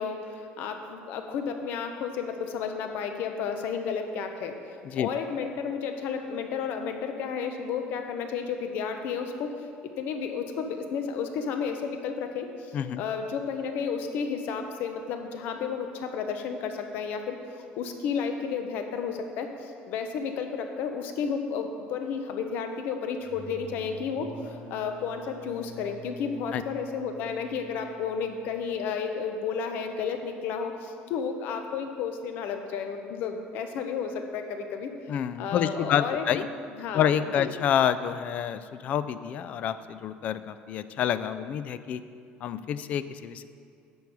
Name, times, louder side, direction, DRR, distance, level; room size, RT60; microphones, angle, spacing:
voice 1, 0.0-4.5 4.9-9.5 10.0-17.4 17.8-34.9 35.4-36.4 36.8-37.5, left 6 dB, 60° left, 5 dB, 0.8 m, -32 dB
sound 1, 23.2-28.7, right 1 dB, 75° right, 2.3 m, -47 dB
voice 2, 35.1-36.5 36.9-42.0 42.4-43.5, left 9 dB, 40° left, 13 dB, 0.4 m, -28 dB
10.5 x 7.0 x 4.9 m, 2.3 s
cardioid pair, 165°, 4 cm